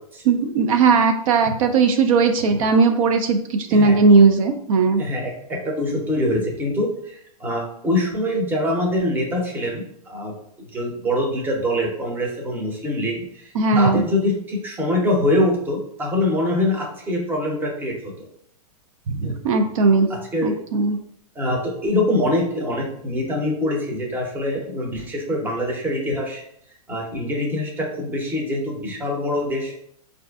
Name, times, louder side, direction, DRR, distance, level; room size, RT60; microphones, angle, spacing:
voice 1, 0.3-5.0 13.6-14.0 19.2-20.1 20.4-21.0, right 4 dB, 60° right, 6 dB, 0.4 m, -17 dB
voice 2, 5.0-10.3 10.7-18.1 19.2-19.3 20.1-20.6 21.4-26.4 26.9-29.8, left 1 dB, 10° right, 0 dB, 0.6 m, -24 dB
4.2 x 2.5 x 2.3 m, 0.70 s
hypercardioid pair, 145°, 20 cm